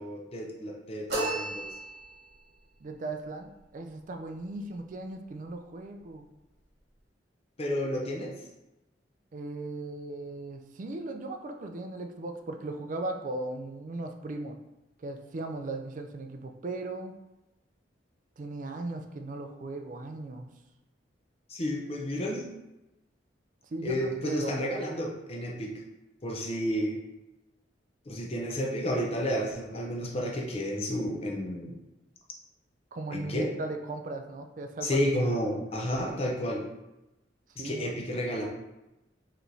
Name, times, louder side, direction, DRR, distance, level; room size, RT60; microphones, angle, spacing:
voice 1, 0.0-1.7 7.6-8.3 21.5-22.4 23.8-25.7 26.2-27.0 28.1-31.8 33.1-33.5 34.8-36.6 37.6-38.5, equal, 30° left, -1 dB, 0.7 m, -31 dB
sound 1, 1.1-2.3, right 2 dB, 60° right, 1.4 m, -33 dB
voice 2, 2.8-6.3 9.3-14.6 15.0-17.1 18.4-20.5 23.7-24.6 32.9-35.0 37.6-37.9, right 2 dB, 45° right, 5 dB, 0.4 m, -37 dB
4.7 x 3.1 x 2.7 m, 0.98 s
head